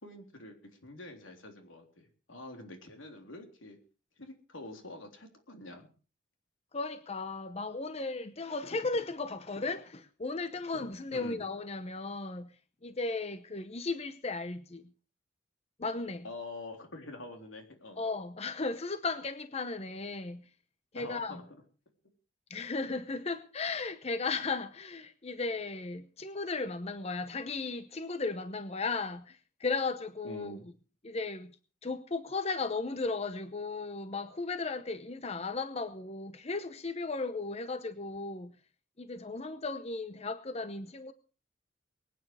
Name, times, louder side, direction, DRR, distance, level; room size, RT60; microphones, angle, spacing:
voice 1, 0.0-3.8 4.2-5.9 11.1-11.5 16.2-18.0 21.0-21.4 30.2-30.7, left 2 dB, 85° left, 3.6 m, -46 dB
voice 2, 6.7-12.5 12.8-14.9 15.8-16.2 18.0-20.4 20.9-21.4 22.5-30.6 31.0-31.5 31.8-38.5 39.0-41.1, left 3 dB, 35° left, 0.8 m, -35 dB
22.5 x 9.4 x 4.8 m
head